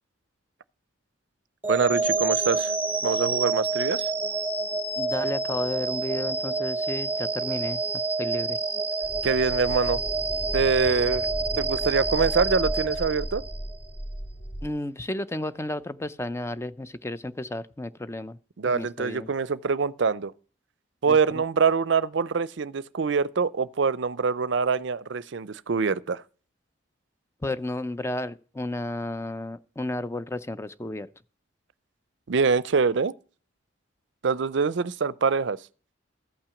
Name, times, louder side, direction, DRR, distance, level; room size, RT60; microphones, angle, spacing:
sound 1, 1.6-13.7, right 3 dB, 10° right, 1.1 m, -28 dB
voice 1, 1.7-2.7 3.0-4.1 9.2-10.0 10.5-11.3 11.6-13.4 18.6-20.3 21.0-26.2 32.3-33.1 34.2-35.6, right 5 dB, 65° right, 0.5 m, -24 dB
voice 2, 5.0-7.8 8.2-8.6 14.6-18.4 18.7-19.3 21.1-21.4 27.4-31.1, left 1 dB, 15° left, 0.4 m, -32 dB
sound 2, 9.0-14.7, right 1 dB, 70° left, 3.0 m, -35 dB
14.0 x 5.9 x 6.9 m
head